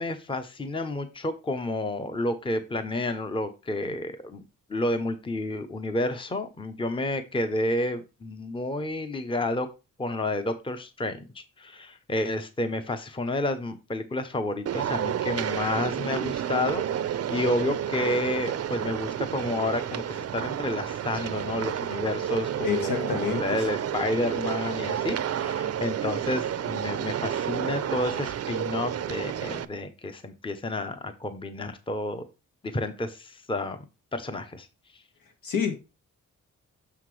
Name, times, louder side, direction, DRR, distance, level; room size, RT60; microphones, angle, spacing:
voice 1, 0.0-4.4 4.7-9.7 10.0-32.3 32.6-33.8 34.1-34.7, left 2 dB, 15° left, 0.7 m, -30 dB
sound 1, 14.7-29.7, right 9 dB, 50° right, 0.5 m, -30 dB
voice 2, 22.6-23.4 35.4-35.8, left 7 dB, 80° left, 1.6 m, -27 dB
6.8 x 5.8 x 3.1 m
wide cardioid pair, 130°, 33 cm